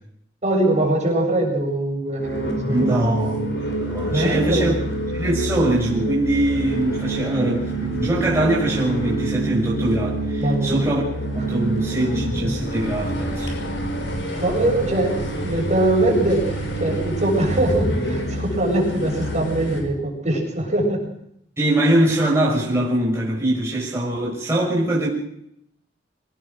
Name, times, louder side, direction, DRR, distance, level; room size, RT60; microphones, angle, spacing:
voice 1, 0.4-3.0 4.1-4.7 10.4-11.0 11.5-11.6 14.4-21.0, right 1 dB, 40° right, 1 dB, 7.2 m, -22 dB
sound 1, 2.2-19.8, right 1 dB, 80° left, 6.1 m, -27 dB
voice 2, 2.6-4.7 5.1-11.0 11.4-13.5 21.6-25.1, right 1 dB, 15° right, -5 dB, 5.6 m, -22 dB
24.5 x 18.5 x 6.4 m, 0.74 s
head